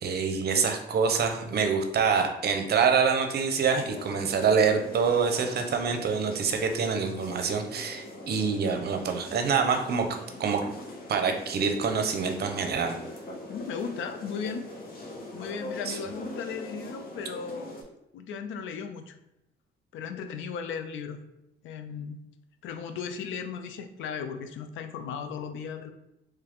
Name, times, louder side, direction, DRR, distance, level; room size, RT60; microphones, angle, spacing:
voice 1, 0.0-10.1 10.4-10.6 11.1-13.0 15.9-16.0, right 6 dB, 55° right, 5 dB, 0.6 m, -26 dB
sound 1, 3.7-17.8, left 1 dB, 50° left, 0.8 m, -42 dB
voice 2, 13.5-14.7 15.3-17.7 18.1-19.1 19.9-21.2 21.6-22.2 22.6-25.9, left 6 dB, 75° left, 8 dB, 0.4 m, -36 dB
3.3 x 2.4 x 3.4 m, 0.87 s
cardioid pair, 90°, 20 cm